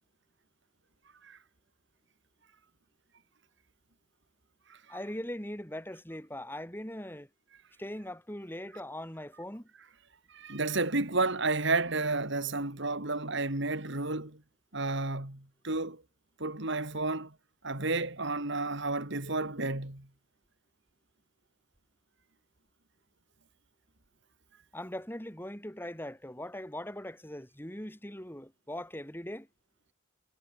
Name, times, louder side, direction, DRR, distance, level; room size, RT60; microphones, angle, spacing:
voice 1, 4.9-7.3 7.8-9.7 24.7-29.5, left 1 dB, 10° left, 5.4 m, -40 dB
voice 2, 10.3-14.4 14.7-16.0 16.4-17.3 17.6-20.1, right 3 dB, 60° right, 3.3 m, -31 dB
head